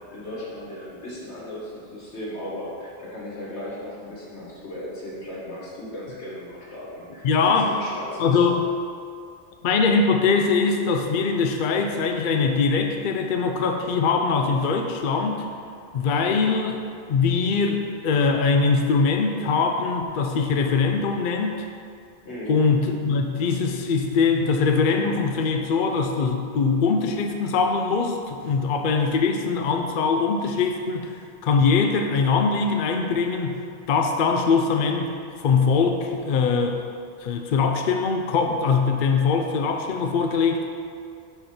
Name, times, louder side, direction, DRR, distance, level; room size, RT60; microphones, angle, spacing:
voice 1, 0.1-8.4 22.2-22.6, left 1 dB, 80° left, -6 dB, 1.8 m, -36 dB
voice 2, 7.2-7.7 8.2-8.6 9.6-15.4 15.9-16.8 17.1-21.7 22.5-33.6 33.9-36.8 37.2-40.7, left 4 dB, 60° left, 4 dB, 0.6 m, -22 dB
5.0 x 4.6 x 5.8 m, 2.4 s
omnidirectional pair, 1.1 m